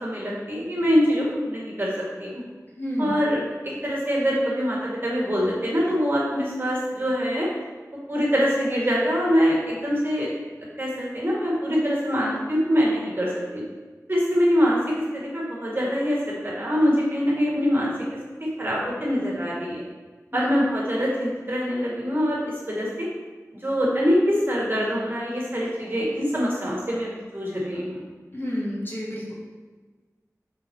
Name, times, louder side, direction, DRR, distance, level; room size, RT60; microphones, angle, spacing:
voice 1, 0.0-1.9 2.2-2.4 3.0-3.4 3.6-7.5 8.1-10.3 10.8-13.6 14.1-19.8 20.3-23.1 23.6-28.0, equal, 35° right, -4 dB, 1.8 m, -24 dB
voice 2, 2.8-3.1 20.3-20.4 28.3-29.3, equal, 35° left, -5 dB, 1.7 m, -29 dB
6.1 x 4.0 x 4.6 m, 1.3 s
wide cardioid pair, 50°, 6 cm